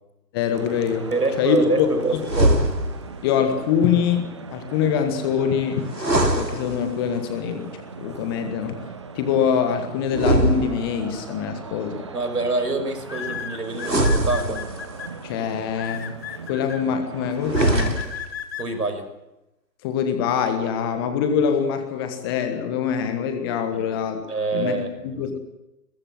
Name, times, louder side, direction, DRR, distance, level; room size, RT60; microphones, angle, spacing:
voice 1, 0.3-1.1 1.4-1.9 3.2-8.8 9.1-12.0 15.2-16.2 16.4-18.0 19.8-24.2 24.5-25.4, left 7 dB, 15° left, 7 dB, 1.4 m, -24 dB
sound 1, 0.5-18.0, right 5 dB, 20° right, 0.8 m, -39 dB
voice 2, 1.1-2.6 12.1-14.6 18.6-19.1 23.7-23.9 24.3-25.4, right 3 dB, 65° right, 9 dB, 5.9 m, -26 dB
sound 2, 2.2-3.2 5.9-7.2 10.1-11.3 13.8-15.0 17.4-18.4, right 1 dB, 90° right, 2.6 m, -22 dB
sound 3, 11.6-11.9 13.1-15.1 15.8-16.8 17.6-18.7, left 9 dB, 35° left, 2.5 m, -34 dB
22.0 x 21.5 x 7.6 m, 0.94 s
figure-of-eight pair, 140°, 49 cm